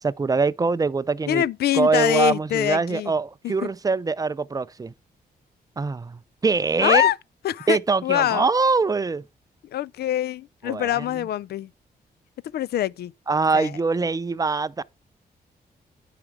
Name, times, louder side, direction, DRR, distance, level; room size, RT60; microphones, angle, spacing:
voice 1, 0.0-1.4 1.7-4.9 5.8-7.1 7.7-9.2 10.7-11.3 13.3-14.8, right 4 dB, 20° right, 0.4 m, -23 dB
voice 2, 1.3-3.1 3.4-3.7 6.8-7.2 7.4-8.5 9.7-11.7 12.5-13.1 13.5-13.7, left 12 dB, 75° left, 0.4 m, -24 dB
9.7 x 5.1 x 4.6 m
cardioid pair, 85°, 16 cm